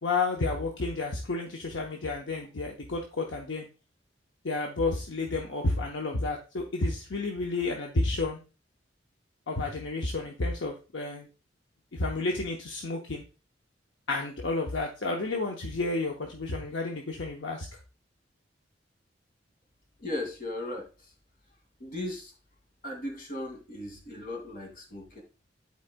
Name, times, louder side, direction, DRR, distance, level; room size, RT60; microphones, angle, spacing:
voice 1, 0.0-3.7 4.4-8.4 9.5-11.3 11.9-13.2 14.1-17.7, left 3 dB, 75° left, 1 dB, 0.8 m, -31 dB
voice 2, 20.0-21.1 21.8-22.3 22.8-25.2, left 1 dB, 55° left, 1 dB, 2.1 m, -37 dB
10.5 x 4.6 x 2.2 m, 0.32 s
head